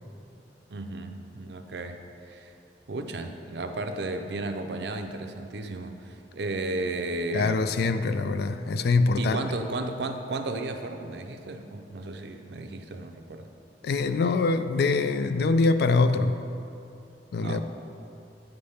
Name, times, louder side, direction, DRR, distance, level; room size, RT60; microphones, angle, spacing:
voice 1, 0.7-2.0 2.3-2.5 2.9-7.7 9.2-13.5 17.4-17.6, right 2 dB, 65° right, 6 dB, 0.5 m, -34 dB
voice 2, 7.3-9.4 13.8-16.4 17.3-17.6, left 3 dB, 60° left, 10 dB, 0.3 m, -24 dB
9.3 x 3.4 x 5.5 m, 2.7 s
head